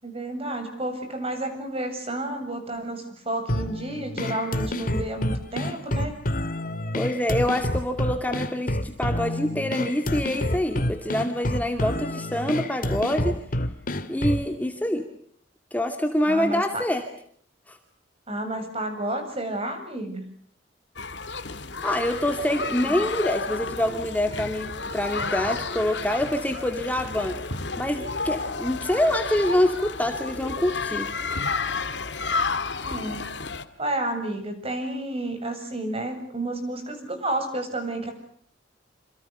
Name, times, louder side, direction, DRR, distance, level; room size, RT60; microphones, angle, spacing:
voice 1, 0.0-6.2 16.2-16.8 18.3-20.2 32.8-33.2 33.8-38.1, right 1 dB, 30° right, 7 dB, 7.9 m, -31 dB
sound 1, 3.5-14.5, left 1 dB, 50° left, 2.1 m, -28 dB
voice 2, 6.9-13.4 14.1-15.0 15.7-17.0 17.7-17.8 21.8-27.4 27.8-31.1, left 1 dB, 10° left, 5 dB, 2.5 m, -26 dB
sound 2, 21.0-33.6, left 4 dB, 65° left, 2.3 m, -31 dB
28.0 x 27.5 x 6.9 m, 0.63 s
head